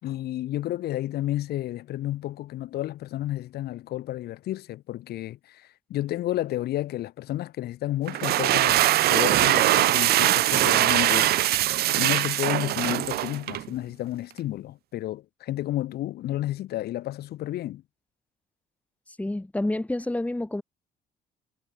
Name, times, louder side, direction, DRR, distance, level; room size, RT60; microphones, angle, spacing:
voice 1, 0.0-11.4 11.9-17.8, left 14 dB, 70° left, 3.1 m, -31 dB
sound 1, 8.1-13.7, right 15 dB, 70° right, 0.9 m, -22 dB
voice 2, 19.2-20.6, left 1 dB, 10° left, 4.0 m, -28 dB
cardioid pair, 110°, 17 cm